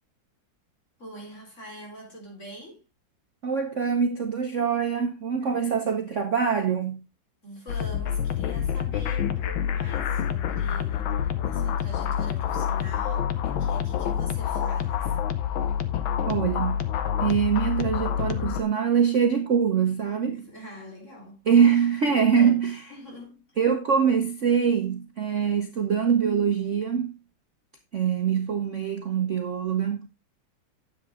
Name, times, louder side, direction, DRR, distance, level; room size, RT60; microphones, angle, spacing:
voice 1, 1.0-2.8 5.4-5.6 7.4-15.2 20.3-21.4 22.0-22.6 22.9-23.6, equal, 35° left, 4.4 m, -44 dB
voice 2, 3.4-7.0 16.3-16.8 17.2-20.4 21.5-22.8 23.6-27.2 27.9-30.1, right 7 dB, 50° right, 1.0 m, -24 dB
sound 1, 7.7-18.6, left 9 dB, 85° left, 1.7 m, -27 dB
10.0 x 7.9 x 3.6 m
omnidirectional pair, 2.1 m